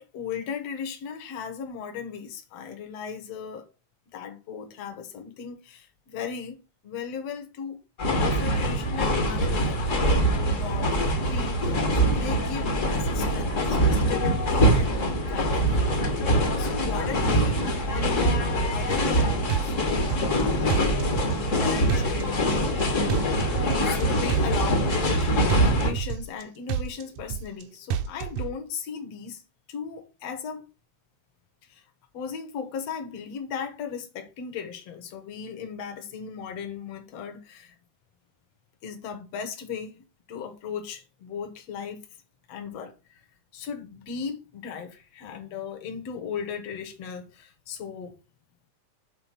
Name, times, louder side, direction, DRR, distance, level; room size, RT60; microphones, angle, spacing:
voice 1, 0.0-3.7 4.1-7.8 8.2-15.7 16.6-23.0 23.8-29.4 29.7-30.6 31.7-31.8 32.1-37.7 38.8-40.0 40.3-42.0 42.5-42.9 43.5-48.1, left 6 dB, 65° left, 2.3 m, -37 dB
sound 1, 8.0-25.9, equal, 45° left, 1.0 m, -24 dB
sound 2, 18.9-19.2 19.5-20.4 20.7-21.6 21.9-22.8 23.1-24.0 24.3-25.2 25.5-26.4 26.7-27.6 27.9-28.5, right 8 dB, 80° right, 2.0 m, -30 dB
7.6 x 4.0 x 5.9 m
omnidirectional pair, 3.3 m